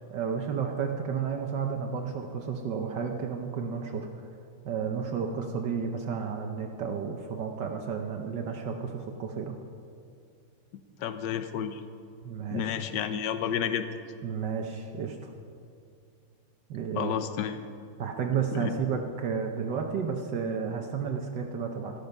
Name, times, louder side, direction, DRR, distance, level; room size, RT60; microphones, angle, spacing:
voice 1, 0.1-4.1 4.6-9.5 12.2-12.7 14.2-15.3 16.7-17.2 18.0-21.9, right 6 dB, 65° right, 4 dB, 1.3 m, -32 dB
voice 2, 11.0-11.8 12.5-13.9 17.0-17.6 18.5-18.7, left 9 dB, 65° left, 10 dB, 1.2 m, -31 dB
13.0 x 12.0 x 5.3 m, 2.4 s
omnidirectional pair, 2.3 m